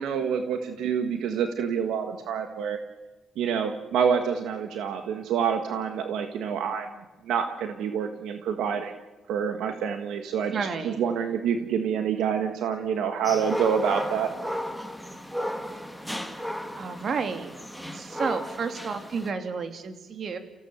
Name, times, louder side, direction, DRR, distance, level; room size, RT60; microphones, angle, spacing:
voice 1, 0.0-2.8 3.4-6.9 7.3-8.9 9.3-14.3, right 7 dB, 85° right, 6 dB, 1.6 m, -27 dB
voice 2, 10.5-11.0 16.8-17.5 17.9-20.4, right 5 dB, 50° right, 7 dB, 2.7 m, -31 dB
sound 1, 13.2-19.3, equal, ahead, 2.0 m, -34 dB
29.5 x 16.5 x 7.1 m, 1.1 s
cardioid pair, 90°, 0 cm